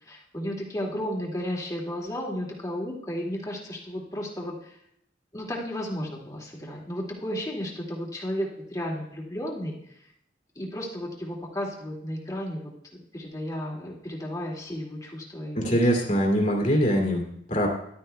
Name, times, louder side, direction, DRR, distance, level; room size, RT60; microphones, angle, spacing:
voice 1, 0.1-4.7 5.3-9.7 10.6-12.7 13.1-15.7, equal, 20° left, -2 dB, 2.2 m, -33 dB
voice 2, 15.5-17.7, equal, 45° left, 0 dB, 2.4 m, -23 dB
14.0 x 12.0 x 2.3 m, 0.72 s
head